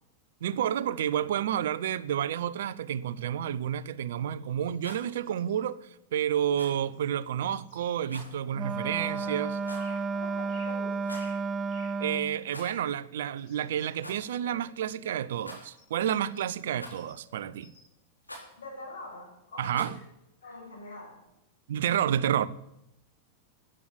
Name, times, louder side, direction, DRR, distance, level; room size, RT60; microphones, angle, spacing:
voice 1, 0.4-9.5 12.0-17.7 19.6-19.9 21.7-22.5, right 10 dB, 60° right, 0.8 m, -30 dB
sound 1, 4.4-5.6 6.9-8.2 9.8-10.1 10.5-12.0 12.6-12.9 13.4-14.7 15.8-17.9 18.4-20.1 20.4-21.0, left 4 dB, 40° left, 5.6 m, -58 dB
Rattle, 4.7-5.1 6.5-6.8 8.1-8.3 9.6-10.0 10.9-11.4 12.4-12.9 13.1-13.2 14.0-14.2 15.4-15.9 16.8-17.2 18.2-18.5 19.7-20.0, left 1 dB, 85° left, 4.2 m, -45 dB
Wind instrument woodwind instrument, 8.5-12.4, right 4 dB, 20° right, 0.6 m, -32 dB
voice 2, 8.9-9.4 9.7-11.2 18.6-19.9 20.4-21.2, left 2 dB, 65° left, 7.4 m, -44 dB
14.0 x 9.9 x 9.8 m
figure-of-eight pair, 90°, 0 cm